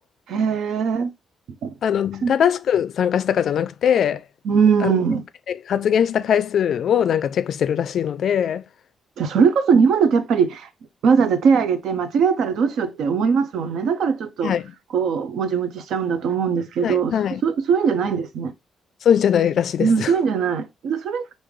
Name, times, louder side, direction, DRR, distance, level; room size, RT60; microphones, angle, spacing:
voice 1, 0.3-1.1 1.6-1.7 2.2-2.3 4.4-5.2 9.2-10.7 11.0-14.5 14.9-17.1 17.4-18.5 19.8-21.2, right 6 dB, 80° right, 0.5 m, -20 dB
voice 2, 1.8-4.2 5.5-8.6 14.4-14.7 16.8-17.4 19.0-20.1, left 8 dB, 65° left, 0.3 m, -21 dB
3.2 x 2.6 x 3.5 m
cardioid pair, 95°, 0 cm